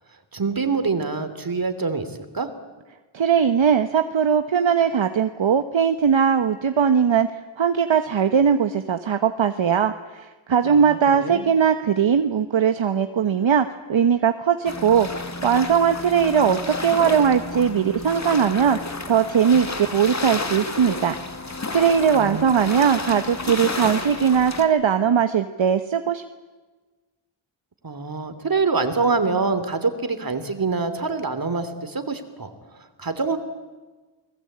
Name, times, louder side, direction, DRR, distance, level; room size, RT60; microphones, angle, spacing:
voice 1, 0.3-2.5 10.6-11.5 22.1-22.4 27.8-33.4, right 4 dB, 45° right, 10 dB, 3.0 m, -25 dB
voice 2, 3.1-15.1 15.4-18.8 19.1-21.2 21.5-26.2, right 7 dB, 65° right, 8 dB, 1.3 m, -20 dB
sound 1, 14.6-24.6, left 2 dB, 35° left, 2.4 m, -31 dB
29.5 x 21.0 x 8.7 m, 1.3 s
wide cardioid pair, 90°, 49 cm